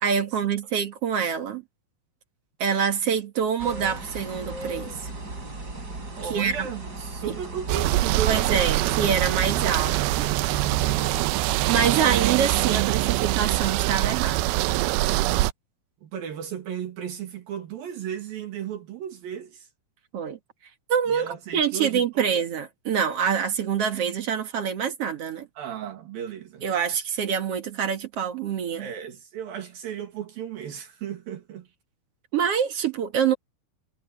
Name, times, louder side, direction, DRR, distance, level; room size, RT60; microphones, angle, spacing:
voice 1, 0.0-1.6 2.6-5.1 6.3-6.7 7.3-7.4 8.3-10.3 11.7-14.4 20.1-20.4 20.9-21.2 21.5-25.5 26.6-28.9 32.3-33.3, right 7 dB, 55° right, 1.9 m, -25 dB
sound 1, 3.6-11.3, right 2 dB, 25° right, 5.2 m, -37 dB
voice 2, 6.2-8.5 10.9-11.5 16.0-19.7 21.1-22.3 25.6-26.7 28.8-31.7, right 9 dB, 70° right, 3.7 m, -35 dB
sound 2, 7.7-15.5, right 17 dB, 90° right, 2.5 m, -23 dB
omnidirectional pair, 4.4 m